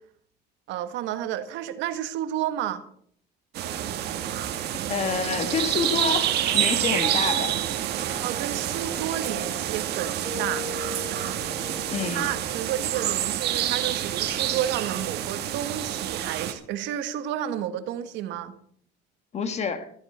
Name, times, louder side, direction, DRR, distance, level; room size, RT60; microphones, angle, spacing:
voice 1, 0.7-2.8 8.2-10.7 12.1-18.5, right 11 dB, 75° right, 9 dB, 1.7 m, -31 dB
sound 1, 3.5-16.5, right 11 dB, 60° right, 1.7 m, -28 dB
voice 2, 4.9-7.5 11.9-12.3 19.3-19.9, left 5 dB, 35° left, 10 dB, 1.5 m, -28 dB
Piano, 6.0-12.7, equal, 10° right, 3.2 m, -40 dB
14.5 x 14.0 x 4.4 m, 0.62 s
cardioid pair, 150°, 19 cm